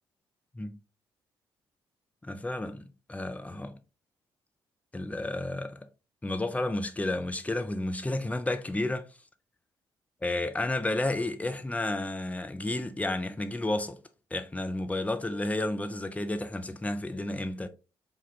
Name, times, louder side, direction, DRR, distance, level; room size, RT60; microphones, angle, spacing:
voice 1, 2.2-3.7 4.9-5.8 6.2-9.0 10.2-14.0 14.3-17.7, left 2 dB, 10° left, 0.4 m, -31 dB
3.5 x 2.2 x 2.7 m
figure-of-eight pair, 40°, 11 cm